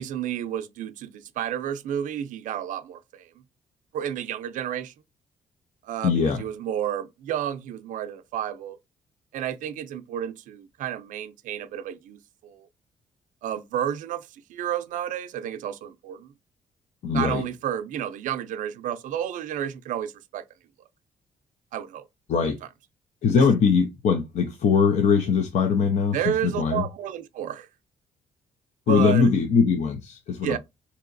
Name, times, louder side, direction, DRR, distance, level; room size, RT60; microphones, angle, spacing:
voice 1, 0.0-3.3 3.9-4.9 5.8-8.8 9.3-12.7 13.4-16.3 17.1-20.4 21.7-22.0 23.4-23.5 26.1-27.7 28.9-29.3 30.4-30.6, right 10 dB, 75° right, 0.5 m, -31 dB
voice 2, 6.0-6.4 17.0-17.4 22.3-22.6 23.2-26.8 28.9-30.6, left 5 dB, 60° left, 0.5 m, -21 dB
4.7 x 2.8 x 2.5 m
cardioid pair, 165°, 13 cm